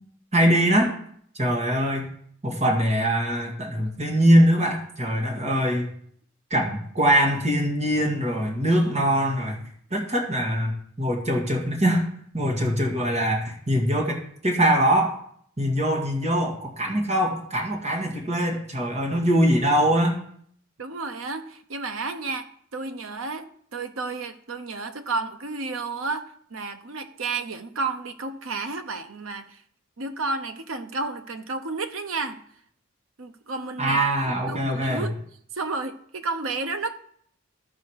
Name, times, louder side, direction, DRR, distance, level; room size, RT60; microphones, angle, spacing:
voice 1, 0.3-0.9 1.4-2.1 2.4-5.9 6.5-9.6 9.9-12.0 12.3-15.2 15.6-20.2 33.8-35.0, equal, 30° right, 1.9 m, -22 dB
voice 2, 20.8-29.6 30.0-32.4 33.2-35.2 35.5-37.0, right 3 dB, 75° right, 0.9 m, -32 dB
14.5 x 4.9 x 4.7 m
head